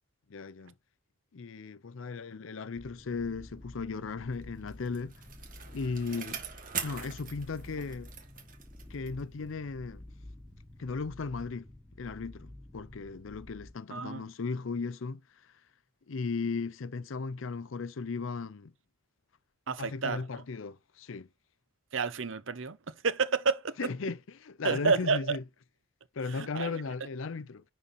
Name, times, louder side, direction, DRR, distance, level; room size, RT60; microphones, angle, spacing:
voice 1, 0.3-0.7 1.3-5.1 5.7-6.4 6.8-8.1 8.9-10.0 10.8-11.7 12.0-15.2 16.1-18.7 19.8-21.3 23.8-25.4 26.2-27.6, left 4 dB, 70° left, 0.5 m, -36 dB
sound 1, 2.7-13.7, left 1 dB, ahead, 1.8 m, -50 dB
Bicycle, 4.4-9.3 9.7-9.8, right 7 dB, 40° right, 1.8 m, -42 dB
voice 2, 13.9-14.2 19.7-20.2 21.9-22.8 23.0-23.8 24.6-25.4 26.3-26.7, right 4 dB, 70° right, 0.8 m, -29 dB
10.5 x 4.2 x 4.1 m
head